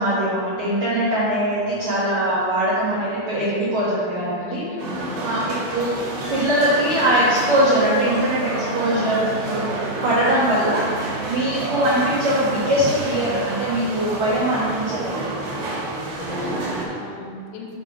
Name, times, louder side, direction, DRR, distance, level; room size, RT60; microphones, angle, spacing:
voice 1, 0.0-4.6 5.2-5.9 6.3-9.6 10.0-10.9 11.3-15.6, right 1 dB, 85° right, -9 dB, 1.6 m, -21 dB
voice 2, 4.1-5.3 15.9-17.8, left 3 dB, 85° left, 0 dB, 2.9 m, -38 dB
sound 1, 4.8-16.9, right 2 dB, 60° right, 2.6 m, -29 dB
Guitar, 6.9-16.7, right 3 dB, 70° left, 2.1 m, -36 dB
7.2 x 3.8 x 5.6 m, 2.3 s
omnidirectional pair, 5.3 m